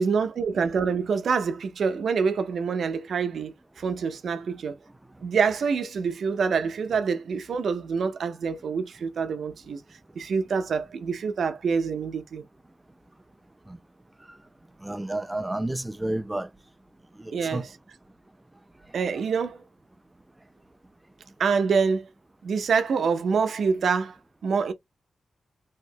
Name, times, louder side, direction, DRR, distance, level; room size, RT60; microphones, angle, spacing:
voice 1, 0.0-4.8 5.2-9.8 10.1-12.4 17.3-17.7 18.9-19.6 21.4-22.1 22.4-24.2 24.4-24.7, right 5 dB, 80° right, 0.6 m, -26 dB
voice 2, 14.8-16.5 17.2-17.6, right 1 dB, 10° right, 0.4 m, -30 dB
3.2 x 2.8 x 2.5 m
wide cardioid pair, 105°, 0 cm